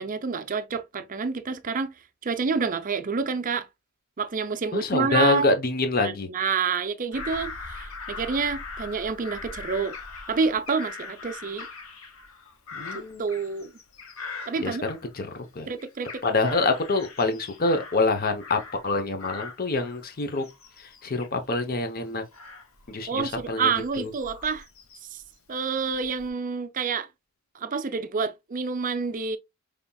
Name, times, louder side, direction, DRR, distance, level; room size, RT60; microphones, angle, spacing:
voice 1, 0.0-1.9 2.2-3.7 4.2-5.5 6.0-9.9 10.3-11.7 13.2-13.7 14.5-14.8 15.7-16.2 23.1-24.6 25.1-25.2 25.5-27.1 27.5-29.4, right 5 dB, 40° right, 0.5 m, -28 dB
voice 2, 4.7-6.3 12.7-13.2 14.6-15.3 15.6-15.7 16.2-20.4 21.0-22.2 22.9-23.7 24.0-24.1, left 3 dB, 45° left, 0.8 m, -26 dB
Bird vocalization bird call bird song / Crow, 7.1-15.4 15.8-18.9 19.2-25.2 25.7-26.3, left 4 dB, 85° left, 1.2 m, -41 dB
5.4 x 3.5 x 2.2 m
head